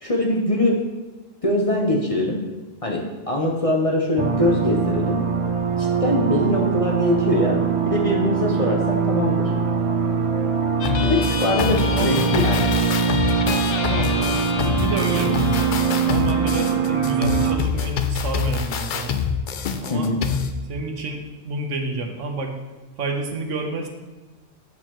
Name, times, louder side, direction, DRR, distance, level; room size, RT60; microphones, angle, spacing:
voice 1, 0.0-0.8 1.4-2.4 2.8-5.2 5.8-9.5 11.0-12.6 16.4-16.8 19.9-20.2, left 1 dB, 30° left, -1 dB, 0.8 m, -22 dB
sound 1, 4.2-17.6, right 6 dB, 50° right, 0.4 m, -22 dB
sound 2, 10.8-17.8, left 6 dB, 85° left, 1.0 m, -31 dB
sound 3, 10.8-20.5, left 7 dB, 60° left, 0.5 m, -26 dB
voice 2, 11.9-12.4 13.8-15.7 16.0-19.2 19.8-20.1 20.6-22.5 23.0-23.9, right 3 dB, 75° right, 2 dB, 1.3 m, -29 dB
8.4 x 6.6 x 3.0 m, 1.2 s
omnidirectional pair, 1.3 m